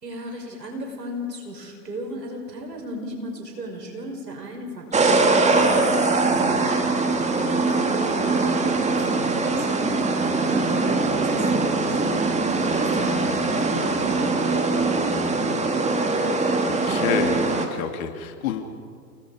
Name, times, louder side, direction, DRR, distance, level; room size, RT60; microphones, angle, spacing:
voice 1, 0.0-14.3, equal, 90° right, 2 dB, 5.5 m, -37 dB
sound 1, 4.9-17.7, right 3 dB, 15° right, 2.2 m, -22 dB
voice 2, 16.6-18.6, left 8 dB, 60° left, 5 dB, 2.6 m, -29 dB
30.0 x 19.0 x 5.0 m, 2.2 s
hypercardioid pair, 105°, 48 cm